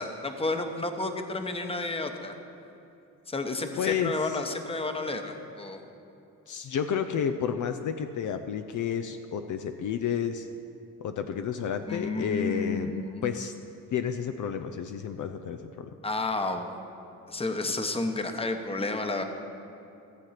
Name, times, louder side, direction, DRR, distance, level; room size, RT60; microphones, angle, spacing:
voice 1, 0.0-2.3 3.3-5.8 11.9-13.3 16.0-16.8 17.3-19.2, left 2 dB, 15° left, 6 dB, 1.0 m, -31 dB
voice 2, 3.8-4.4 6.5-10.5 11.0-13.5 13.9-15.9, left 7 dB, 55° left, 8 dB, 0.6 m, -31 dB
15.0 x 7.5 x 5.8 m, 2.8 s
cardioid pair, 100°, 35 cm